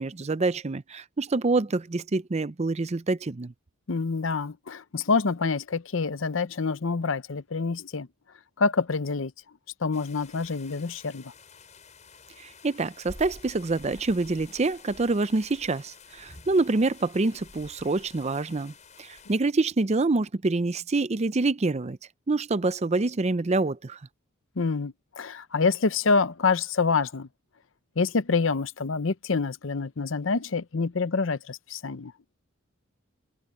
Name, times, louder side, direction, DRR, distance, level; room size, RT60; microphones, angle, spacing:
voice 1, 0.0-3.5 12.4-22.0 22.3-24.0, right 3 dB, 30° right, 0.5 m, -26 dB
voice 2, 3.9-8.1 8.6-9.3 9.8-11.3 24.6-27.3 28.0-32.1, left 4 dB, 65° left, 0.7 m, -26 dB
sound 1, 9.9-19.4, left 3 dB, 35° left, 6.2 m, -49 dB
head